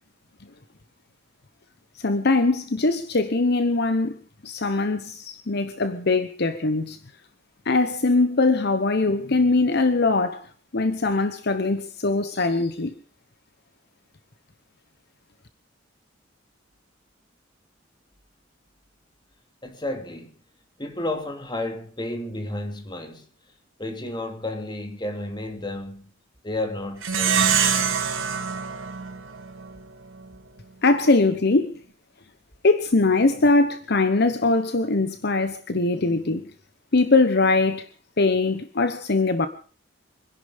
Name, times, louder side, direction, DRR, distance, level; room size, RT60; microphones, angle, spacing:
voice 1, 2.0-4.2 4.4-7.0 7.6-10.5 10.7-12.9 30.8-31.7 32.6-36.4 36.9-37.9 38.2-39.5, left 3 dB, 55° left, 1.0 m, -21 dB
voice 2, 19.6-20.3 20.8-23.3 23.8-26.1 26.4-27.5, left 1 dB, 25° left, 2.7 m, -32 dB
Plucked string instrument, 27.0-29.8, right 7 dB, 90° right, 2.6 m, -24 dB
25.0 x 11.0 x 5.1 m
head